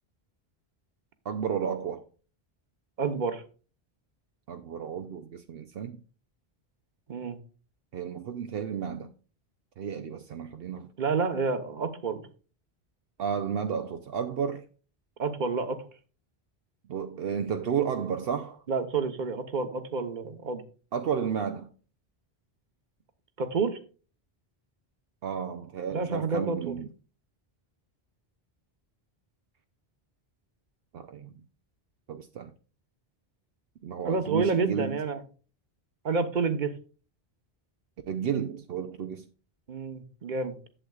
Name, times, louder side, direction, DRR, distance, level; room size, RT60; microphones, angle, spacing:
voice 1, 1.2-2.0 4.5-6.0 7.9-9.1 9.8-10.9 13.2-14.7 16.9-18.6 20.9-21.7 25.2-26.9 30.9-31.3 32.1-32.5 33.8-35.0 38.1-39.3, right 7 dB, 75° right, 0.9 m, -32 dB
voice 2, 3.0-3.4 7.1-7.4 11.0-12.3 15.2-15.8 18.7-20.6 23.4-23.8 25.9-26.7 34.0-35.2 36.0-36.7 39.7-40.6, right 4 dB, 50° right, 1.1 m, -29 dB
11.5 x 7.8 x 2.3 m
omnidirectional pair, 1.0 m